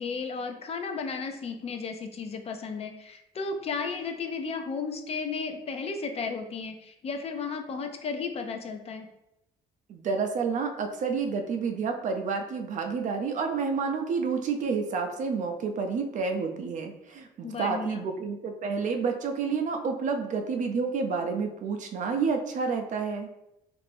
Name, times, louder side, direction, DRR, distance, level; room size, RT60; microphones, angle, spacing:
voice 1, 0.0-9.1 17.4-18.1, left 4 dB, 35° left, 5 dB, 0.5 m, -34 dB
voice 2, 9.9-23.3, right 5 dB, 50° right, 4 dB, 0.5 m, -29 dB
3.2 x 2.5 x 3.3 m, 0.86 s
cardioid pair, 110°, 17 cm